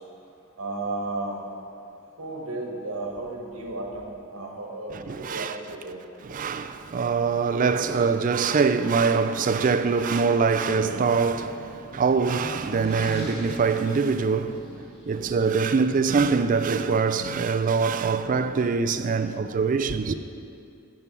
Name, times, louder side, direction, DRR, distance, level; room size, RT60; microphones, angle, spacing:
voice 1, 0.6-1.5 2.2-6.0, right 2 dB, 85° right, 1.4 m, -33 dB
voice 2, 4.9-5.6 6.2-20.1, right 5 dB, 40° right, 0.4 m, -24 dB
sound 1, 10.4-15.1, equal, 50° left, 1.8 m, -41 dB
7.6 x 7.0 x 6.0 m
head